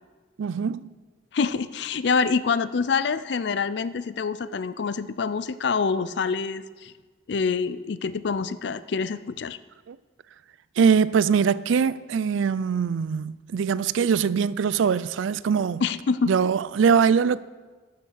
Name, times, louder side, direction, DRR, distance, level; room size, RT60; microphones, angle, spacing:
voice 1, 0.4-0.9 9.9-10.0 10.8-15.8 16.3-17.4, right 6 dB, 85° right, 0.4 m, -22 dB
voice 2, 1.3-6.9 7.3-9.6 15.8-16.3, left 5 dB, 60° left, 0.4 m, -26 dB
12.5 x 7.1 x 6.4 m
head